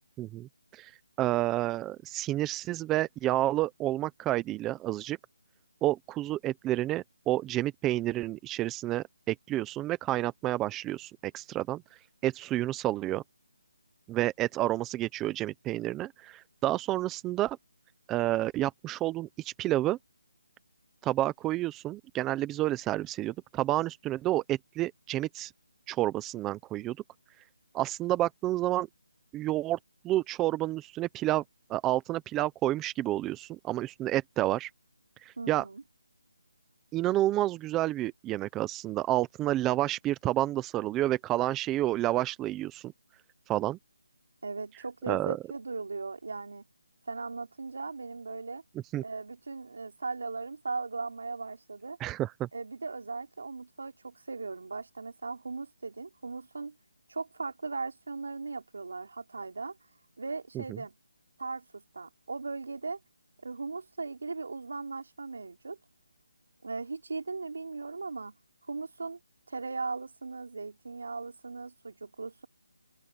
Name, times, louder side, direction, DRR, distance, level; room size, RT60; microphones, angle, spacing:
voice 1, 0.2-0.9 1.2-5.2 5.8-11.8 12.2-13.2 14.1-17.6 18.1-20.0 21.0-25.5 25.9-27.0 27.7-28.9 29.3-29.8 30.0-31.4 31.7-34.7 35.2-35.6 36.9-42.9 43.5-43.8 45.1-45.4 48.9-49.0 52.0-52.5, right 15 dB, 10° right, 0.5 m, -30 dB
voice 2, 35.4-35.8 44.4-46.7 47.1-48.6 49.0-52.0 52.5-56.8 57.1-59.8 60.2-61.0 61.4-63.0 63.4-65.8 66.6-68.4 68.7-69.2 69.5-72.5, right 4 dB, 65° right, 3.6 m, -38 dB
hypercardioid pair, 175°, 0 cm